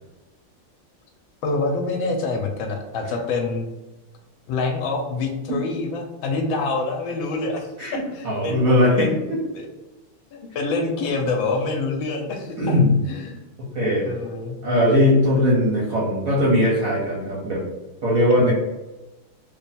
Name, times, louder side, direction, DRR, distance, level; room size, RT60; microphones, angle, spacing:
voice 1, 1.4-3.7 4.5-8.7 9.0-9.2 9.5-9.6 10.3-12.7 13.0-13.4 14.0-14.6 18.4-18.5, left 3 dB, 75° left, 2 dB, 1.3 m, -26 dB
voice 2, 7.8-9.1 12.6-12.9 13.6-14.1 14.6-17.7 18.0-18.5, left 1 dB, 60° right, -5 dB, 0.9 m, -19 dB
3.3 x 2.2 x 4.0 m, 1.1 s
omnidirectional pair, 2.3 m